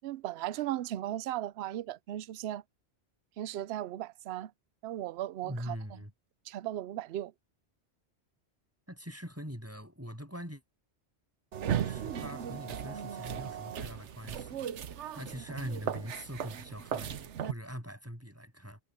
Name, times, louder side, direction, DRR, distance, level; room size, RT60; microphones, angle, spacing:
voice 1, 0.0-2.6 3.4-4.5 4.8-6.0 6.5-7.3 11.7-11.9 15.4-15.5, right 13 dB, 70° right, 0.8 m, -37 dB
voice 2, 5.4-6.1 8.9-10.6 11.8-14.6 15.1-18.8, equal, 10° right, 7.6 m, -42 dB
sound 1, 11.5-17.5, right 9 dB, 85° right, 1.2 m, -37 dB
omnidirectional pair, 1.2 m